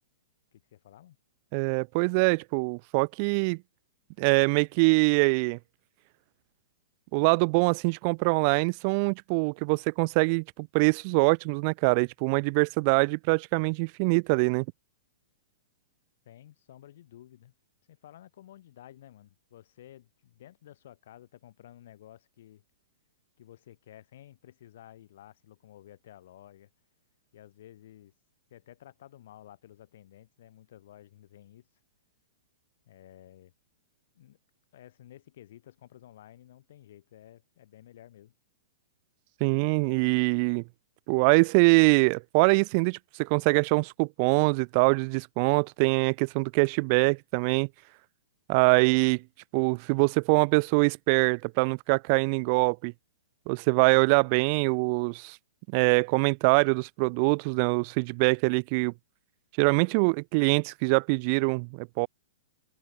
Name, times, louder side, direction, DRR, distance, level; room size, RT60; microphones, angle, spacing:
voice 1, 0.5-1.2 16.2-17.5 17.9-22.6 23.4-26.7 27.3-28.1 28.5-31.7 32.8-33.5 34.1-34.4 34.7-38.3, left 12 dB, 60° left, 5.2 m, -53 dB
voice 2, 1.5-3.6 4.2-5.6 7.1-14.7 39.4-40.6 41.1-47.7 48.5-49.2 49.5-52.9 53.5-55.4 55.7-58.9 59.6-62.1, right 34 dB, 45° right, 0.6 m, -24 dB
hypercardioid pair, 115°, 0 cm